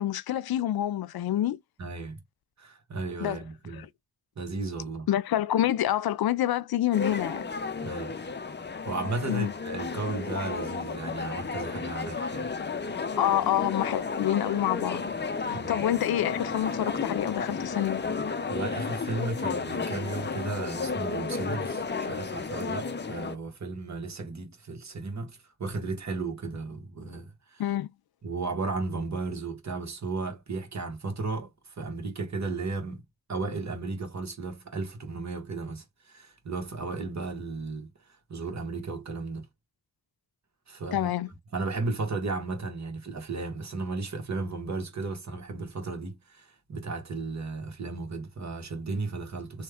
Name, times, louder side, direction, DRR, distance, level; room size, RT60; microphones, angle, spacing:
voice 1, 0.0-1.6 3.2-3.4 3.7-3.9 5.1-7.4 9.3-9.5 13.2-15.1 15.5-18.0 27.6-27.9 40.9-41.3, left 12 dB, 70° left, 0.5 m, -27 dB
voice 2, 1.8-2.2 2.6-3.9 4.4-5.1 7.8-8.1 8.9-12.5 15.5-15.8 18.5-27.6 28.2-33.0 33.3-37.9 38.3-39.5 40.7-41.1 41.5-49.6, right 3 dB, 45° right, 1.4 m, -34 dB
sound 1, 6.9-23.4, left 4 dB, 30° left, 0.7 m, -33 dB
3.0 x 2.3 x 3.4 m
cardioid pair, 55°, 38 cm